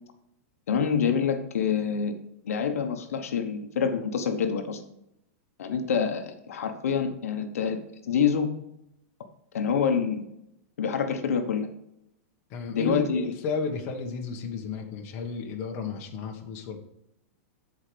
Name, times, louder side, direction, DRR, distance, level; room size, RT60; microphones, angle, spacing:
voice 1, 0.7-2.1 2.4-4.8 5.6-8.5 9.5-10.2 10.8-11.7 12.7-13.2, left 6 dB, 90° left, 6 dB, 1.1 m, -26 dB
voice 2, 12.5-16.8, left 4 dB, 35° left, 2 dB, 1.4 m, -33 dB
13.5 x 5.0 x 3.4 m, 0.81 s
supercardioid pair, 165°, 8 cm